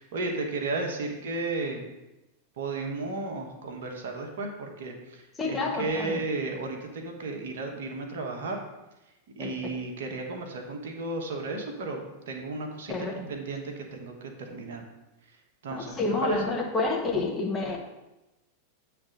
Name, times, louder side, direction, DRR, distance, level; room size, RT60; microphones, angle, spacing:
voice 1, 0.0-1.8 2.6-8.6 9.3-14.8 15.3-15.4 15.6-16.5, right 3 dB, 55° right, 2 dB, 1.3 m, -34 dB
voice 2, 5.4-6.2 9.4-9.5 12.9-13.3 15.7-17.8, left 3 dB, 20° left, 0 dB, 1.3 m, -29 dB
8.8 x 3.5 x 6.3 m, 0.98 s
figure-of-eight pair, 90°, 0 cm